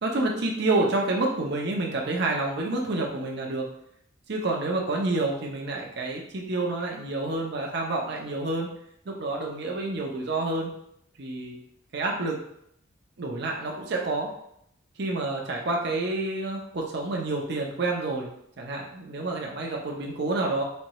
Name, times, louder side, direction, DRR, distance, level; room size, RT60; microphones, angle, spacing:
voice 1, 0.0-3.6 4.3-8.7 9.1-10.7 11.2-11.6 11.9-12.4 13.2-14.3 15.0-18.3 18.6-20.6, right 2 dB, 55° right, -1 dB, 0.7 m, -28 dB
4.3 x 2.7 x 3.0 m, 0.72 s
head